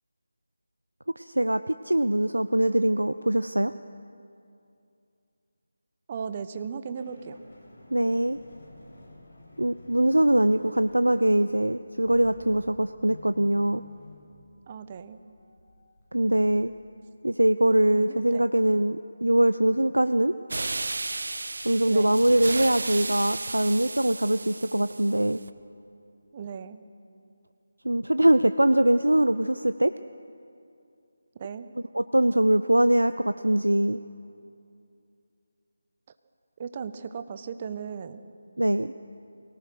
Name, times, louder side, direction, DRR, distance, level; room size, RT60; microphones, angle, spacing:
voice 1, 1.2-3.7 7.9-8.4 9.6-13.8 16.1-16.7 17.2-20.3 21.6-25.4 27.8-29.9 31.9-34.0 38.6-38.9, right 1 dB, 85° right, 12 dB, 0.6 m, -22 dB
voice 2, 6.1-7.4 14.7-15.2 17.9-18.5 21.9-22.3 26.3-26.8 31.3-31.7 36.6-38.2, right 6 dB, 30° right, 11 dB, 1.0 m, -37 dB
sound 1, 6.9-17.0, left 1 dB, 45° left, 7.2 m, -52 dB
sound 2, 20.5-25.5, right 3 dB, 60° right, 1.0 m, -34 dB
24.0 x 18.0 x 6.4 m, 2.5 s
figure-of-eight pair, 155°, 0 cm